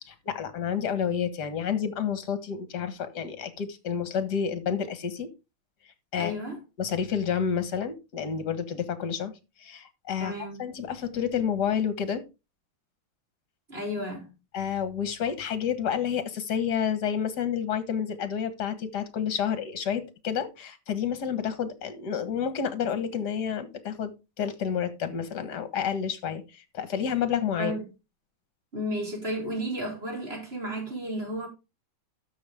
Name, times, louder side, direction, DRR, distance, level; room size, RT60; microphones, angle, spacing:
voice 1, 0.1-5.3 6.1-6.3 6.8-9.3 9.6-10.3 10.6-12.2 14.5-24.1 24.4-27.7, left 8 dB, 55° left, 2.0 m, -29 dB
voice 2, 6.1-6.6 10.2-10.6 13.7-14.3 27.6-27.8 28.7-31.5, equal, 30° right, 4.5 m, -33 dB
12.5 x 6.6 x 3.5 m
omnidirectional pair, 2.2 m